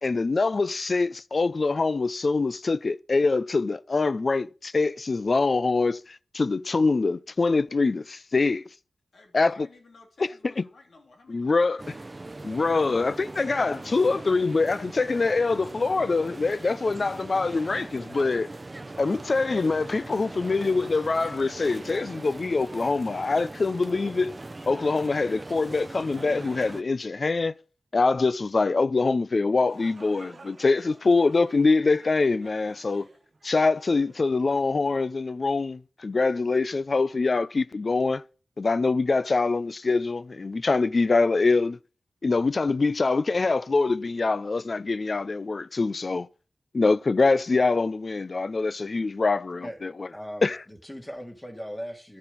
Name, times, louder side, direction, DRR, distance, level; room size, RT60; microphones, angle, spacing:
voice 1, 0.0-8.6 9.3-9.7 10.2-10.6 11.3-11.8 12.4-18.5 19.0-24.3 24.7-27.6 27.9-33.1 33.4-38.2 38.6-41.8 42.2-46.3 46.7-50.1 50.4-50.6, left 3 dB, 50° left, 0.5 m, -24 dB
voice 2, 9.1-12.0, left 3 dB, 85° left, 3.1 m, -54 dB
sound 1, 11.8-26.8, right 2 dB, 30° right, 0.6 m, -41 dB
sound 2, 29.4-35.1, right 3 dB, 50° right, 1.1 m, -52 dB
voice 3, 50.1-52.2, equal, 20° left, 2.1 m, -39 dB
11.5 x 7.2 x 5.2 m
wide cardioid pair, 95°, 0 cm